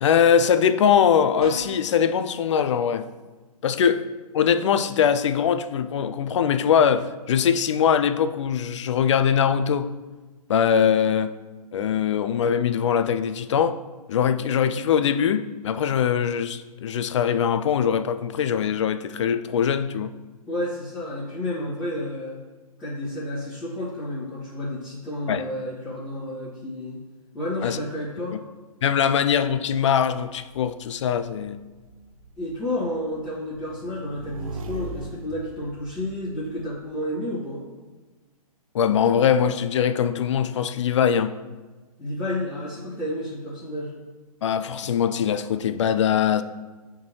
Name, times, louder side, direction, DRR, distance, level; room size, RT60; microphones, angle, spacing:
voice 1, 0.0-3.1 3.6-4.0 4.3-9.9 10.5-11.3 11.7-13.8 14.1-20.1 25.3-25.4 27.6-27.8 28.3-28.4 28.8-31.6 38.7-41.3 44.4-46.4, left 8 dB, 50° left, 0.4 m, -22 dB
sound 1, 1.4-2.0, equal, 85° right, 1.4 m, -37 dB
voice 2, 20.5-22.4 22.8-27.0 27.3-28.4 32.4-37.6 42.0-43.9, left 1 dB, 10° left, 1.7 m, -31 dB
Motorcycle / Engine, 29.9-36.8, right 2 dB, 65° right, 0.7 m, -41 dB
10.5 x 3.8 x 3.2 m
figure-of-eight pair, 125°, 19 cm